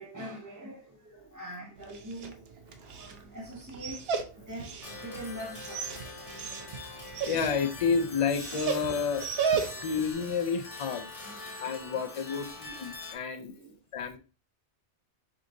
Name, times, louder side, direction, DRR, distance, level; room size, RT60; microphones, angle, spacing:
voice 1, 0.0-6.7 9.7-9.9 11.2-11.6 13.1-13.7, equal, 20° right, 0.6 m, -44 dB
Dog, 1.8-10.0, right 6 dB, 65° right, 0.8 m, -35 dB
sound 1, 4.8-13.1, left 3 dB, 30° left, 1.1 m, -44 dB
voice 2, 7.2-9.5 9.8-11.1 11.5-13.5 13.9-14.2, left 6 dB, 50° left, 0.4 m, -30 dB
4.8 x 2.6 x 3.6 m
omnidirectional pair, 1.2 m